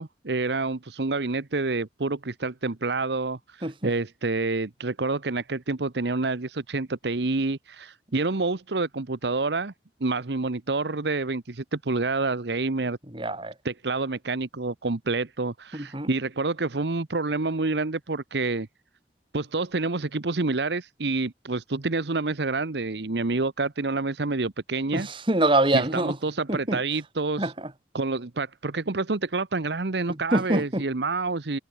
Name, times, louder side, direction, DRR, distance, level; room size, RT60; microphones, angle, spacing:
voice 1, 0.0-9.7 10.0-13.0 13.6-18.7 19.3-25.1 25.7-27.5 27.9-31.6, right 3 dB, 75° right, 1.0 m, -28 dB
voice 2, 13.1-13.5 15.7-16.1 24.9-26.2 26.5-26.8 27.4-27.5 30.3-30.8, right 1 dB, 30° right, 2.7 m, -24 dB
head